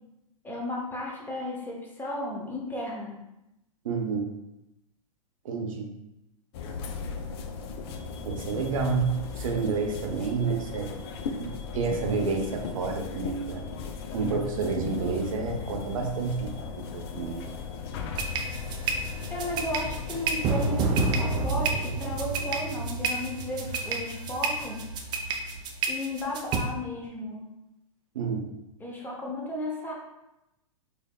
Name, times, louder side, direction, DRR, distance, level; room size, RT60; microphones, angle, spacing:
voice 1, 0.4-3.2 19.3-24.8 25.9-27.5 28.8-29.9, left 1 dB, 10° left, -3 dB, 0.7 m, -34 dB
voice 2, 3.8-4.3 5.4-5.9 8.2-10.9 11.4-13.6 14.1-17.5 28.1-28.5, right 5 dB, 65° right, 2 dB, 0.6 m, -29 dB
sound 1, 6.5-20.5, left 5 dB, 45° left, 0.4 m, -37 dB
sound 2, 18.1-26.6, right 3 dB, 25° right, 0.4 m, -29 dB
4.2 x 2.7 x 2.2 m, 0.90 s
hypercardioid pair, 105°, 18 cm